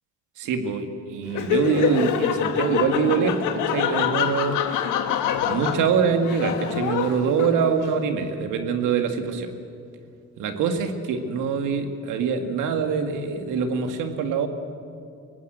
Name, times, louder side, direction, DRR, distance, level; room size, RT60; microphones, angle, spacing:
voice 1, 0.4-4.6 5.5-9.5 10.4-14.5, right 6 dB, 90° right, 6 dB, 2.0 m, -24 dB
Laughter, 1.3-7.9, left 8 dB, 85° left, 1.6 m, -25 dB
23.0 x 18.5 x 8.0 m, 2.4 s
cardioid pair, 90°, 30 cm